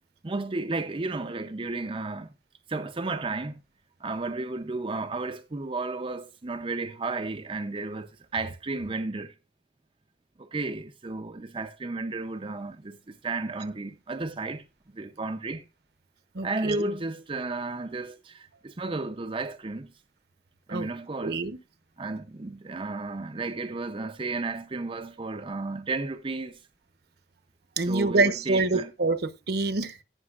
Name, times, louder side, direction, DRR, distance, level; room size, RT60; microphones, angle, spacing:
voice 1, 0.2-2.3 2.7-3.6 4.0-9.3 10.4-14.6 14.9-15.6 16.4-19.9 20.7-21.4 22.0-26.6 27.8-28.9, right 3 dB, 30° right, 0.6 m, -33 dB
voice 2, 16.3-16.9 20.7-20.9 21.2-21.6 27.8-30.0, right 3 dB, 65° right, 1.0 m, -26 dB
18.0 x 6.1 x 2.4 m
head